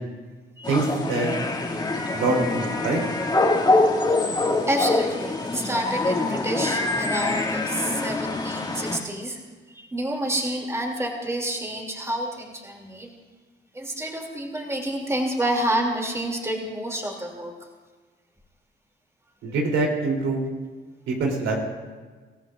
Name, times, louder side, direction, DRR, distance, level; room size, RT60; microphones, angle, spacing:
sound 1, 0.6-9.0, left 2 dB, 20° left, 2.4 m, -24 dB
voice 1, 0.7-1.3 2.1-3.0 19.4-20.4 21.1-21.5, right 3 dB, 80° right, 0 dB, 3.4 m, -24 dB
voice 2, 4.7-9.4 9.7-13.1 13.7-17.5, right 1 dB, 15° right, 0 dB, 2.8 m, -28 dB
26.5 x 14.0 x 2.6 m, 1.4 s
cardioid pair, 90°, 20 cm